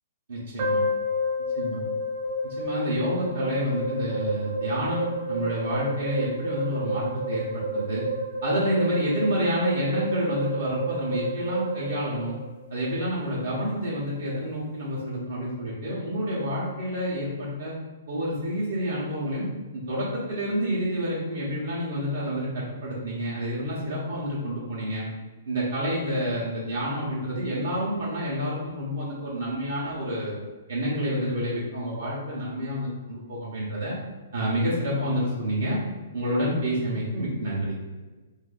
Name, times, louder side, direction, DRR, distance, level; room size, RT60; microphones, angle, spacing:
voice 1, 0.3-0.8 1.5-1.8 2.4-8.0 8.4-12.3 12.7-17.7 18.1-19.5 19.7-25.1 25.5-30.4 30.7-33.9 34.3-35.8 36.1-37.8, equal, 65° right, -7 dB, 0.9 m, -28 dB
sound 1, 0.6-12.8, equal, 30° right, 0.7 m, -30 dB
2.6 x 2.6 x 3.9 m, 1.3 s
hypercardioid pair, 165°, 0 cm